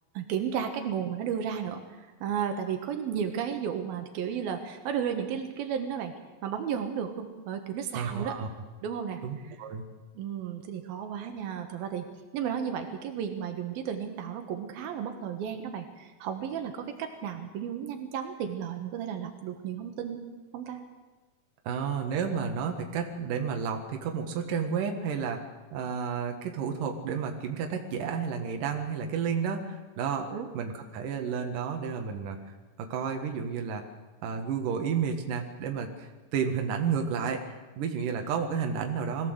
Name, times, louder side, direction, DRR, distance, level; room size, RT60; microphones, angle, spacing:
voice 1, 0.1-6.1 6.4-8.4 8.8-9.5 10.1-12.1 12.3-20.3 20.5-20.8 30.2-30.5, right 8 dB, 85° right, 6 dB, 3.3 m, -33 dB
voice 2, 8.0-8.5 9.2-9.8 21.7-25.4 25.7-30.3 30.5-32.4 32.8-33.9 34.2-37.4 37.8-39.3, right 6 dB, 65° right, 4 dB, 3.2 m, -31 dB
21.0 x 15.5 x 8.0 m, 1.2 s
omnidirectional pair, 4.1 m